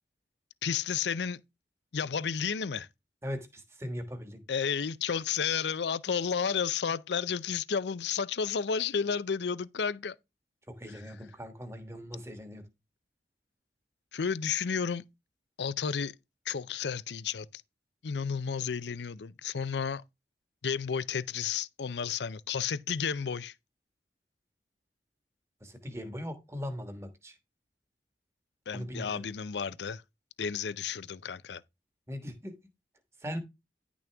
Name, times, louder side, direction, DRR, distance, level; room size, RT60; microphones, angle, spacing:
voice 1, 0.6-1.4 1.9-2.9 4.5-10.2 14.1-15.0 15.6-16.1 16.5-17.6 18.0-20.0 20.6-23.5 28.7-30.0 30.4-31.6, left 6 dB, 80° left, 0.5 m, -32 dB
voice 2, 3.2-4.4 10.7-12.7 25.6-27.3 28.7-29.2 32.1-32.5 33.2-33.4, equal, 15° right, 1.3 m, -39 dB
10.5 x 6.2 x 3.4 m
head